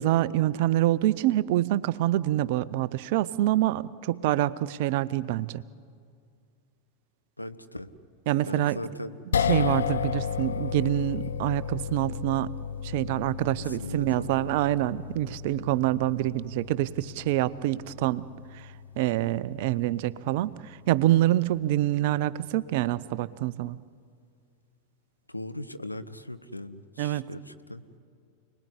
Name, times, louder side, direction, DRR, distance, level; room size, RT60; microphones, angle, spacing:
voice 1, 0.0-5.6 8.3-8.8 9.5-12.5 12.8-18.3 18.5-23.8 27.0-27.3, right 14 dB, 50° right, 19 dB, 0.7 m, -26 dB
voice 2, 7.4-7.9 8.5-9.2 13.6-14.3 25.3-27.8, left 1 dB, 85° left, 11 dB, 1.1 m, -39 dB
sound 1, 9.3-21.6, left 7 dB, 70° left, 0.6 m, -34 dB
28.5 x 20.0 x 9.9 m, 2.3 s
figure-of-eight pair, 90°, 0 cm